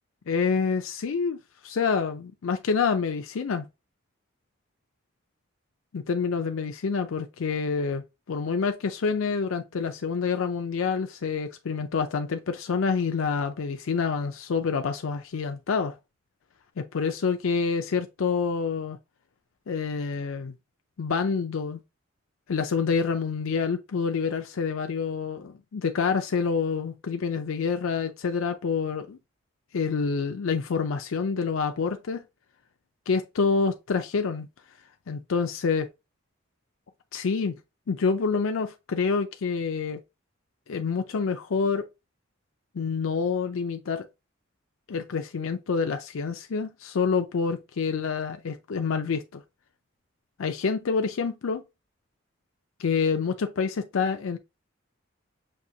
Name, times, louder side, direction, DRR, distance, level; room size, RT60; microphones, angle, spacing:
voice 1, 0.3-1.4 1.6-3.7 5.9-16.0 16.8-19.0 19.7-20.5 21.0-21.8 22.5-29.2 29.7-32.2 33.1-34.5 35.1-35.9 37.1-37.5 37.9-40.0 40.7-41.9 42.7-44.1 44.9-49.4 50.4-51.6 52.8-54.4, left 5 dB, 85° left, 0.5 m, -27 dB
6.5 x 2.7 x 2.7 m
head